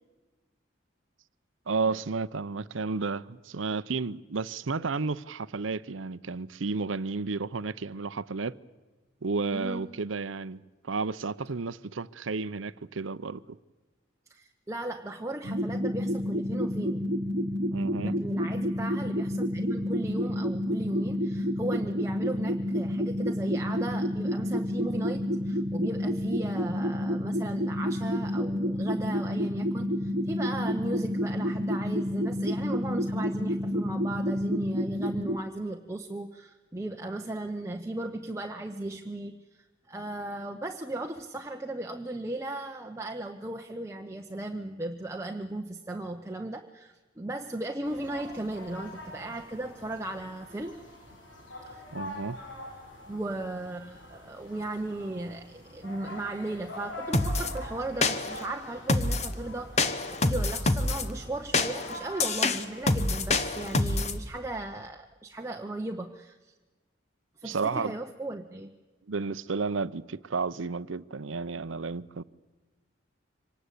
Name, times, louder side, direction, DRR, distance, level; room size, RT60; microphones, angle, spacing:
voice 1, 1.7-8.5 9.2-10.6 10.8-13.6 17.7-18.2 51.9-52.4 67.4-67.9 69.1-72.2, right 4 dB, 85° right, 0.7 m, -32 dB
voice 2, 9.5-9.9 14.3-17.0 18.0-50.8 51.7-51.8 53.1-66.5 67.4-68.7, right 2 dB, 15° right, 0.8 m, -36 dB
sound 1, 15.4-35.4, equal, 65° right, 1.2 m, -29 dB
sound 2, 47.8-64.1, left 1 dB, 80° left, 6.0 m, -45 dB
sound 3, 57.1-57.5 58.0-58.5 58.9-59.3 59.8-61.1 61.5-64.2, left 2 dB, 35° left, 1.1 m, -26 dB
25.0 x 19.0 x 8.3 m
head